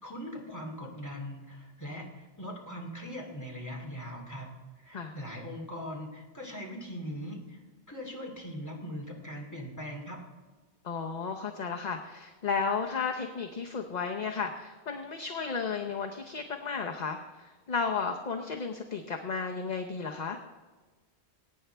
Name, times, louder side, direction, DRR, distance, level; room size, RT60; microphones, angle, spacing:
voice 1, 0.0-4.5 4.8-7.6 7.9-10.2, equal, 15° left, -1 dB, 2.4 m, -40 dB
voice 2, 10.8-20.4, left 5 dB, 45° left, 3 dB, 0.8 m, -33 dB
21.5 x 9.3 x 3.4 m, 1.3 s
omnidirectional pair, 1.1 m